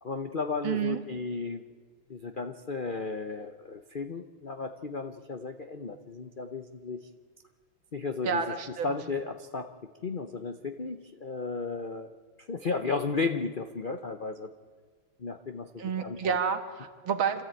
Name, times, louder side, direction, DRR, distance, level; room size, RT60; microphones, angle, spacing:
voice 1, 0.0-1.6 2.1-7.1 7.9-8.5 8.8-9.7 10.0-12.1 12.4-14.5 15.2-16.4, left 4 dB, 80° left, 7 dB, 0.4 m, -34 dB
voice 2, 0.6-1.0 8.2-8.9 15.8-17.4, right 7 dB, 75° right, 7 dB, 2.3 m, -29 dB
27.0 x 14.0 x 9.0 m, 1.6 s
omnidirectional pair, 2.2 m